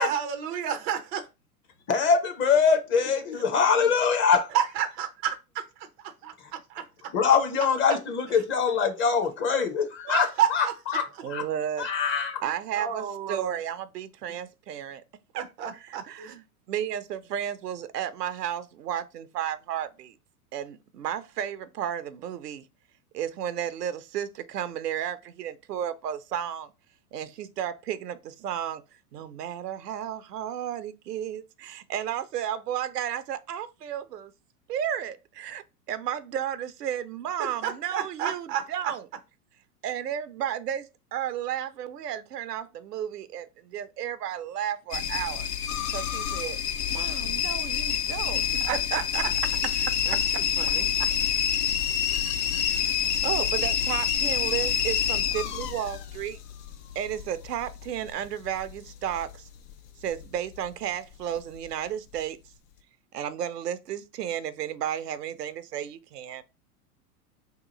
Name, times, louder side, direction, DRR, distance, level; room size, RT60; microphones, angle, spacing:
voice 1, 0.0-1.3 4.5-5.3 5.8-6.1 10.1-10.5 12.7-13.6 15.3-16.4 37.6-38.6 48.6-49.0 50.1-50.9, right 9 dB, 20° right, 0.3 m, -30 dB
voice 2, 1.9-4.5 7.1-11.4 11.8-12.4, left 6 dB, 25° left, 0.7 m, -23 dB
voice 3, 11.2-11.9 12.4-15.0 15.3-15.4 15.7-20.1 20.5-22.7 23.1-26.7 27.1-28.8 29.1-34.3 34.7-39.0 39.8-45.5 45.9-46.6 46.9-49.2 50.1-50.4 51.0-51.1 52.6-56.4 57.0-59.5 60.0-62.4 63.1-66.4, right 10 dB, 90° right, 0.6 m, -33 dB
sound 1, 44.9-59.8 60.0-60.7 61.2-61.7 62.1-62.2, left 8 dB, 75° left, 0.7 m, -28 dB
2.9 x 2.4 x 3.9 m
hypercardioid pair, 105°, 46 cm